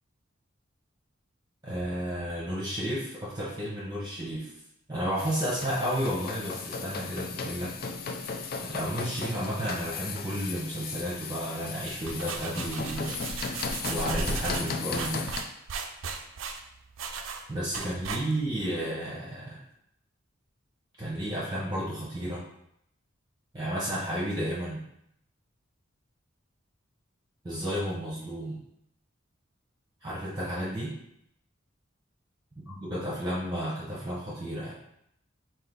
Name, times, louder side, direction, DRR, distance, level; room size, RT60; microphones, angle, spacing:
voice 1, 1.6-4.5 4.9-7.7 8.6-15.3 17.5-19.6 21.0-22.5 23.5-24.8 27.4-28.6 30.0-30.9 32.7-34.8, equal, 20° right, -7 dB, 0.8 m, -32 dB
sound 1, 5.2-15.4, left 5 dB, 50° left, 0.4 m, -36 dB
sound 2, 11.7-18.6, right 4 dB, 90° right, 0.5 m, -36 dB
3.9 x 2.7 x 3.8 m, 0.75 s
head